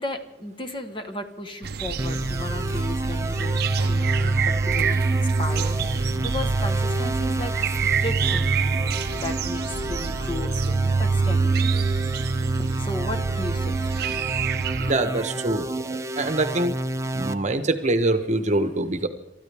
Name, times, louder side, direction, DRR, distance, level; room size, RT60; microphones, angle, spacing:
voice 1, 0.0-11.6 12.4-13.8 14.4-15.1, left 2 dB, 25° left, 5 dB, 1.2 m, -35 dB
sound 1, 1.6-14.9, right 4 dB, 60° right, 0.6 m, -25 dB
sound 2, 2.0-17.3, right 1 dB, 15° right, 0.6 m, -31 dB
voice 2, 14.8-16.8 17.1-19.1, right 2 dB, 40° right, 9 dB, 1.0 m, -24 dB
29.0 x 13.5 x 3.5 m, 0.86 s
head